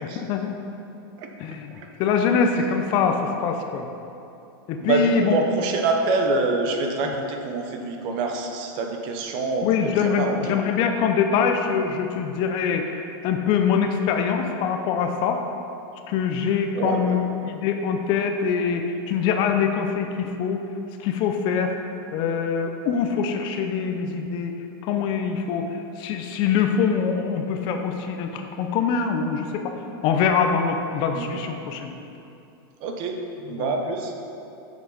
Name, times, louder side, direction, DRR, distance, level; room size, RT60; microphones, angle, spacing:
voice 1, 0.0-0.5 1.4-1.7 2.0-3.9 4.7-5.4 7.0-7.1 9.6-15.4 16.1-20.7 21.0-21.8 22.1-24.5 24.8-29.7 30.0-32.0 33.6-33.8, left 6 dB, 40° left, 5 dB, 0.5 m, -24 dB
voice 2, 1.2-1.6 2.5-2.7 4.8-10.6 16.7-17.2 31.1-31.4 32.8-33.2 33.5-34.1, right 3 dB, 40° right, 3 dB, 0.8 m, -26 dB
7.0 x 6.4 x 4.0 m, 2.7 s
supercardioid pair, 150°, 13 cm